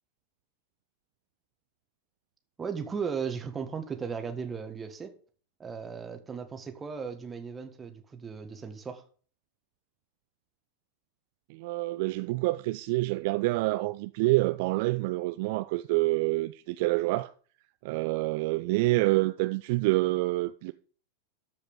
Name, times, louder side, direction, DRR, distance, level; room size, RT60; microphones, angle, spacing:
voice 1, 2.6-5.1 5.6-9.0, right 6 dB, 15° right, 1.6 m, -36 dB
voice 2, 11.5-17.3 17.8-20.7, right 21 dB, 50° right, 0.4 m, -27 dB
13.5 x 5.2 x 5.3 m
figure-of-eight pair, 90°, 0 cm